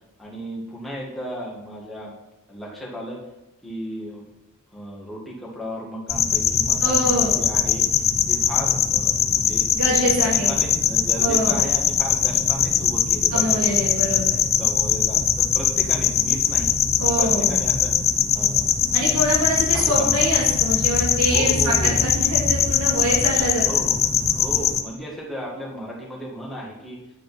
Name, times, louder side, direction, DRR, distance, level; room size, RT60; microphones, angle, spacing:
voice 1, 0.2-2.1 2.5-3.2 3.6-4.2 4.7-9.7 10.5-13.9 14.6-16.8 17.2-17.9 18.3-18.8 19.7-20.2 21.3-22.0 23.6-27.0, equal, ahead, -5 dB, 1.9 m, -35 dB
sound 1, 6.1-24.8, left 8 dB, 30° left, 0.5 m, -21 dB
voice 2, 6.8-7.4 9.7-10.5 11.2-11.5 13.3-14.4 17.0-17.5 18.9-23.7, equal, 90° right, -4 dB, 2.6 m, -24 dB
9.3 x 5.2 x 5.8 m, 0.96 s
head